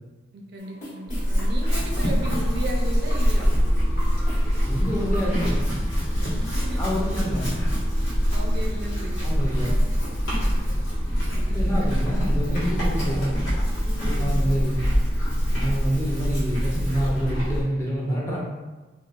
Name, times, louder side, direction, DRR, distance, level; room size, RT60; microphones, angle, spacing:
voice 1, 0.3-3.5 6.1-6.8 8.3-9.3 10.4-11.9 13.8-14.6, right 1 dB, 55° right, 0 dB, 0.4 m, -36 dB
sound 1, 0.6-5.6, equal, 40° left, 1.0 m, -41 dB
Chewing mastication / Livestock farm animals working animals, 1.1-17.6, equal, 85° left, 1.2 m, -24 dB
voice 2, 4.6-5.6 6.8-7.8 9.2-9.8 11.5-13.4 14.0-14.8 15.5-18.4, equal, 15° left, -5 dB, 0.5 m, -27 dB
2.9 x 2.2 x 2.4 m, 1.2 s
head